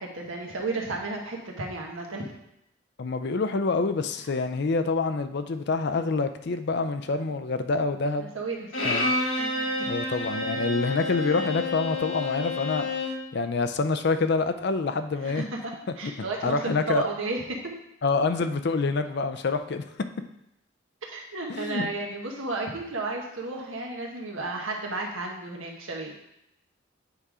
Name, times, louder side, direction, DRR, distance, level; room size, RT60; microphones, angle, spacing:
voice 1, 0.0-2.3 8.2-8.9 9.4-10.0 12.8-12.9 15.2-17.8 21.1-26.1, right 3 dB, 90° right, 0 dB, 1.4 m, -33 dB
voice 2, 3.0-8.3 8.8-9.1 9.9-12.9 13.3-15.4 16.0-16.1 16.4-17.0 18.0-19.8 21.5-21.9, left 3 dB, 55° left, 9 dB, 0.5 m, -26 dB
Bowed string instrument, 8.7-13.2, left 2 dB, 75° left, 1.8 m, -29 dB
8.2 x 3.7 x 4.8 m, 0.81 s
head